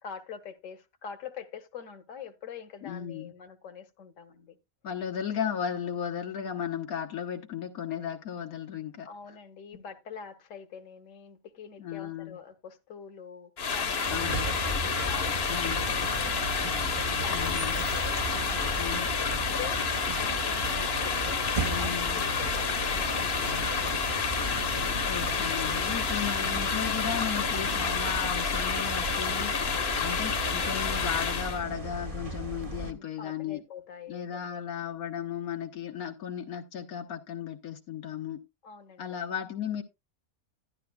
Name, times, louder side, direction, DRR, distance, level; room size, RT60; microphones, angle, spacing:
voice 1, 0.0-4.6 9.1-16.5 17.2-19.9 20.2-23.7 32.7-34.7 38.6-39.2, left 7 dB, 65° left, 1.4 m, -45 dB
voice 2, 2.8-3.3 4.8-9.1 11.8-12.4 14.1-14.5 15.5-15.9 17.3-17.8 18.8-19.1 21.7-22.3 25.1-29.5 30.0-33.6 34.1-38.4 39.0-39.8, left 8 dB, 85° left, 1.5 m, -35 dB
sound 1, 13.6-31.6, left 5 dB, 50° left, 1.1 m, -29 dB
sound 2, 14.0-32.9, right 2 dB, 30° right, 0.9 m, -36 dB
11.5 x 11.0 x 2.3 m
omnidirectional pair, 1.5 m